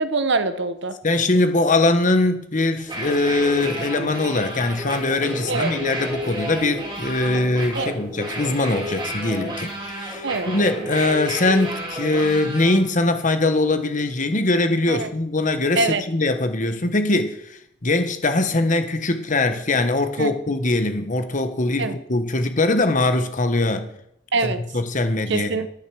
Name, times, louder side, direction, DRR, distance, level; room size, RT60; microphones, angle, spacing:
voice 1, 0.0-1.0 5.5-5.7 7.8-7.9 10.2-10.5 14.9-15.1 15.8-16.0 20.2-20.3 21.8-21.9 24.3-24.6 25.3-25.7, right 3 dB, 60° right, 1.0 m, -23 dB
voice 2, 1.0-23.9 24.4-25.5, left 2 dB, 40° left, 1.2 m, -22 dB
sound 1, 2.8-12.8, equal, 25° right, 3.3 m, -31 dB
10.5 x 9.2 x 6.2 m
head